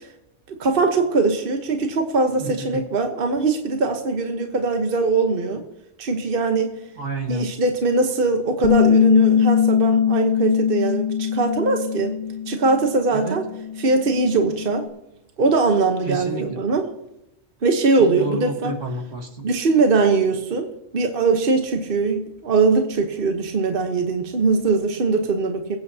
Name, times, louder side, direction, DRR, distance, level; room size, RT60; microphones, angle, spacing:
voice 1, 0.6-5.6 6.0-6.7 7.3-12.1 12.5-13.5 13.8-14.8 15.4-16.9 17.6-18.7 19.4-20.7 20.9-25.8, right 3 dB, 50° right, 5 dB, 1.2 m, -21 dB
voice 2, 2.4-2.8 7.0-7.5 13.1-13.4 16.1-16.5 18.0-19.5, right 1 dB, 75° right, 3 dB, 2.0 m, -30 dB
Bass guitar, 8.6-13.0 13.3-14.9, left 9 dB, 45° left, 1.0 m, -21 dB
23.5 x 8.7 x 2.8 m, 0.89 s
omnidirectional pair, 1.3 m